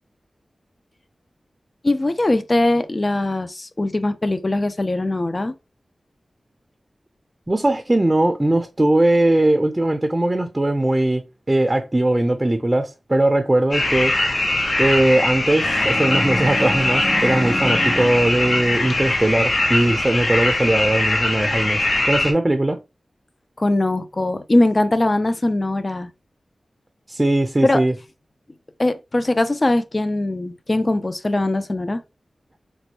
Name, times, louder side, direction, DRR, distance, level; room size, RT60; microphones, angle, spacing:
voice 1, 1.8-5.5 23.6-26.1 27.6-27.8 28.8-32.0, left 2 dB, 40° left, 0.4 m, -21 dB
voice 2, 7.5-11.2 11.5-14.1 14.8-22.8 27.1-27.9, right 1 dB, 25° right, 0.5 m, -19 dB
sound 1, 13.7-22.3, left 2 dB, 65° left, 0.9 m, -21 dB
sound 2, 15.6-19.8, equal, 5° left, 0.8 m, -29 dB
4.1 x 2.2 x 2.9 m
cardioid pair, 55°, 0 cm